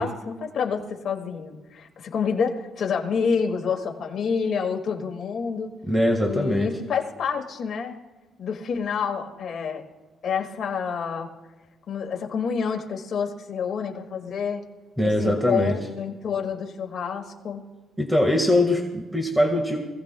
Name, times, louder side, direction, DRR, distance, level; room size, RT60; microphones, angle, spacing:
voice 1, 0.0-5.7 6.3-8.0 8.4-9.8 10.2-11.3 11.9-14.6 15.0-17.6, left 6 dB, 55° left, 2 dB, 2.0 m, -28 dB
voice 2, 5.9-6.7 15.0-15.7 18.0-19.8, left 1 dB, 5° right, 2 dB, 1.7 m, -22 dB
25.5 x 17.0 x 2.3 m, 1.2 s
cardioid pair, 120°, 0 cm